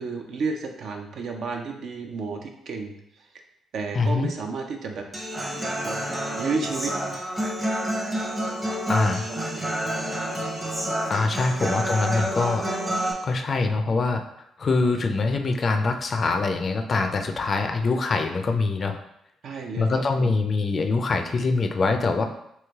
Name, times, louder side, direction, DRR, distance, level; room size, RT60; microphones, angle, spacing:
voice 1, 0.0-3.0 3.7-5.0 5.8-6.9 9.3-9.4 11.4-11.5 19.4-20.3, right 4 dB, 65° right, 3 dB, 0.6 m, -32 dB
voice 2, 3.9-4.3 8.9-9.3 11.1-12.7 13.2-14.2 14.6-19.0 19.8-22.3, left 3 dB, 45° left, 6 dB, 0.4 m, -24 dB
Human voice / Acoustic guitar, 5.1-13.1, right 1 dB, 20° right, 0.8 m, -28 dB
3.2 x 2.9 x 3.5 m, 0.78 s
cardioid pair, 90°, 0 cm